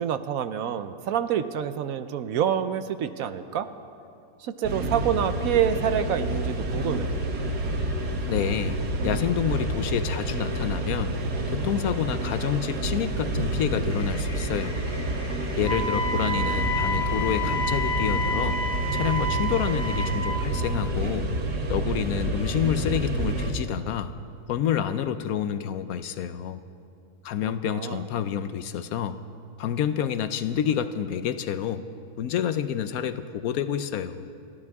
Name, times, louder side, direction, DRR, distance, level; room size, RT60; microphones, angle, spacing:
voice 1, 0.0-3.7 4.4-7.1 27.6-28.0, right 9 dB, 70° right, 11 dB, 1.0 m, -27 dB
sound 1, 4.6-23.5, right 1 dB, 85° right, 1.9 m, -28 dB
voice 2, 8.3-11.1 11.5-14.8 15.6-18.6 18.9-21.3 21.7-24.1 24.5-26.6 27.2-29.2 29.6-31.8 32.2-34.3, left 9 dB, 70° left, 11 dB, 1.0 m, -28 dB
sound 2, 13.9-20.2, left 1 dB, 30° left, 2.7 m, -44 dB
Wind instrument woodwind instrument, 15.6-20.5, left 1 dB, 5° left, 2.7 m, -29 dB
30.0 x 12.0 x 3.5 m, 2.5 s
omnidirectional pair, 1.7 m